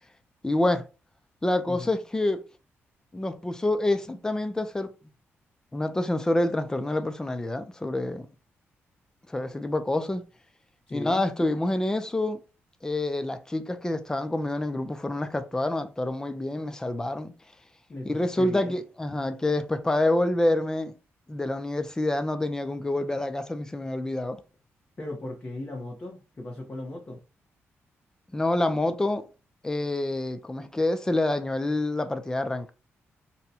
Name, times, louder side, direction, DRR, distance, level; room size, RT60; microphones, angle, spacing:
voice 1, 0.4-0.9 1.4-2.4 3.1-4.9 5.7-8.3 9.3-10.2 10.9-12.4 12.8-17.3 18.0-20.9 21.3-24.4 28.3-29.3 29.6-32.7, left 1 dB, 15° left, 0.4 m, -27 dB
voice 2, 10.9-11.2 17.9-18.8 25.0-27.2, left 1 dB, 30° left, 0.8 m, -37 dB
2.7 x 2.2 x 4.0 m
cardioid pair, 90°, 5 cm